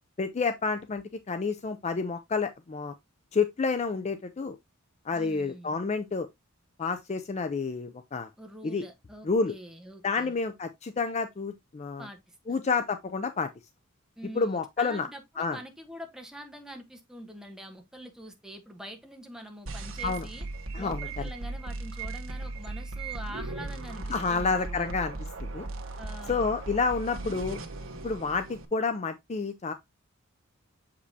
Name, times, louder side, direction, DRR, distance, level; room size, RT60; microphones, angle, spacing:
voice 1, 0.2-2.9 3.3-4.6 5.1-6.3 6.8-8.3 8.6-8.8 9.2-9.5 10.0-12.1 12.5-13.5 14.3-15.1 15.4-15.6 20.0-20.3 20.7-21.1 24.1-25.6 26.3-27.6 28.0-29.7, left 4 dB, 30° left, 0.4 m, -29 dB
voice 2, 5.1-5.8 8.4-10.3 12.0-12.6 14.2-20.4 20.8-24.0 24.3-24.9 26.0-26.5, right 1 dB, 5° right, 1.1 m, -45 dB
sound 1, 19.7-28.7, right 2 dB, 65° right, 1.1 m, -37 dB
6.8 x 5.1 x 2.7 m
head